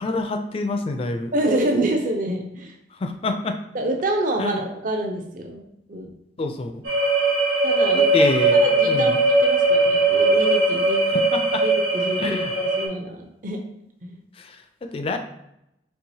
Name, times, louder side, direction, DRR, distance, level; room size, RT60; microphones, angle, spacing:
voice 1, 0.0-1.3 3.0-3.6 4.4-4.6 6.4-6.8 7.9-9.1 11.1-11.6 12.2-12.5 14.4-15.2, left 3 dB, 35° left, 7 dB, 0.3 m, -27 dB
voice 2, 1.3-2.7 3.7-6.1 7.6-11.0 11.6-13.6 14.0-14.2, right 1 dB, 50° right, 3 dB, 0.6 m, -27 dB
sound 1, 6.8-12.8, right 2 dB, 75° right, 1.2 m, -19 dB
4.6 x 3.3 x 2.7 m, 0.80 s
head